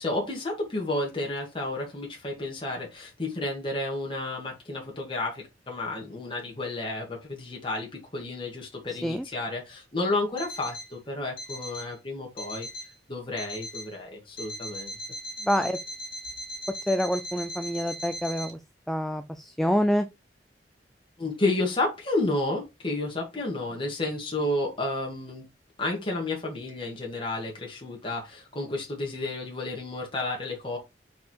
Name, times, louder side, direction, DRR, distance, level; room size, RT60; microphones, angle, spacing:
voice 1, 0.0-12.7 13.1-14.9 21.2-25.4 25.8-30.8, left 2 dB, 30° left, 1.8 m, -31 dB
voice 2, 8.9-9.3 15.4-15.8 16.9-18.6 18.9-20.1, equal, ahead, 0.4 m, -27 dB
Alarm, 10.4-10.9 11.4-11.9 12.4-12.9 13.4-13.9 14.4-18.5, equal, 55° left, 2.6 m, -39 dB
4.7 x 4.7 x 4.5 m
head